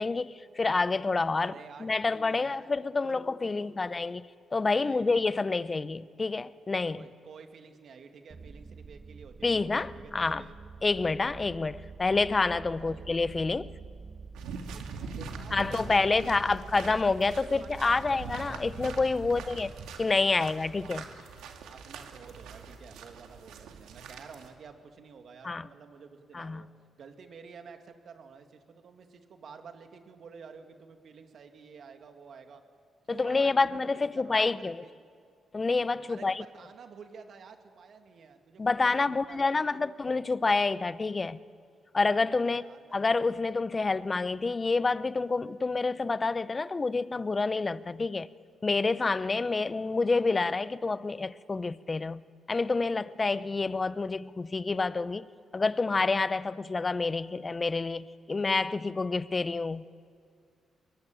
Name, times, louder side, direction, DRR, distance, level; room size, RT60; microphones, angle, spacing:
voice 1, 0.0-1.5 1.8-4.2 4.5-7.0 9.4-10.4 10.8-13.7 15.5-19.7 20.0-21.0 25.4-25.7 26.3-26.6 33.1-34.8 35.5-36.4 38.6-41.4 41.9-42.6 42.9-48.3 48.6-52.2 52.5-55.3 55.5-59.8, left 3 dB, 35° left, 0.8 m, -28 dB
voice 2, 1.4-2.7 3.0-3.3 3.6-3.8 4.8-5.6 6.9-10.6 12.8-13.0 14.7-16.9 17.5-18.2 19.3-19.5 20.4-20.5 20.8-21.1 21.6-26.7 27.0-32.6 33.1-34.9 36.1-39.8 42.4-42.9, right 5 dB, 65° right, 2.5 m, -50 dB
sound 1, 8.3-21.2, right 4 dB, 35° right, 1.3 m, -47 dB
sound 2, 14.3-24.5, right 5 dB, 85° right, 2.3 m, -43 dB
23.0 x 23.0 x 9.1 m
supercardioid pair, 65°, 0 cm